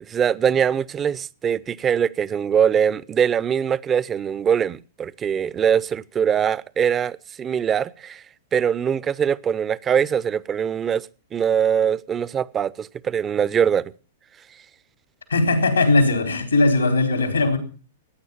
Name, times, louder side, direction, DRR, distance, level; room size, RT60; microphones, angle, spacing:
voice 1, 0.1-8.2 8.5-11.1 11.3-13.9, right 8 dB, 25° right, 0.6 m, -22 dB
voice 2, 15.3-17.6, left 2 dB, 85° left, 4.0 m, -19 dB
15.5 x 9.7 x 7.2 m
figure-of-eight pair, 105°, 0 cm